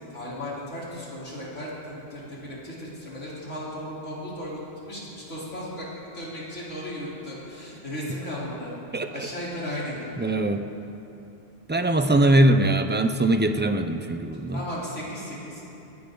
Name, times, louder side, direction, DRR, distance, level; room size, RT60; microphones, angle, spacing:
voice 1, 0.1-4.6 4.9-5.9 6.1-8.7 9.1-10.4 14.5-15.6, left 1 dB, 80° left, -7 dB, 4.4 m, -35 dB
voice 2, 8.9-9.3 10.2-10.7 11.7-14.6, right 1 dB, 10° right, 7 dB, 0.5 m, -21 dB
21.0 x 17.0 x 4.0 m, 2.9 s
omnidirectional pair, 1.2 m